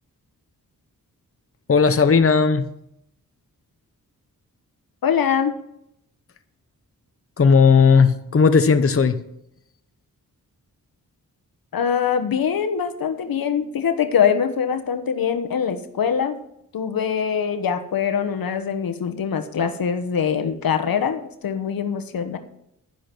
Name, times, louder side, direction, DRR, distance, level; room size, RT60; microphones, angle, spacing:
voice 1, 1.7-2.6 7.4-9.2, left 5 dB, 40° left, 9 dB, 0.9 m, -15 dB
voice 2, 5.0-5.5 11.7-16.4 16.7-22.4, left 7 dB, 80° left, 8 dB, 1.2 m, -23 dB
11.0 x 10.5 x 6.1 m, 0.78 s
cardioid pair, 65°, 35 cm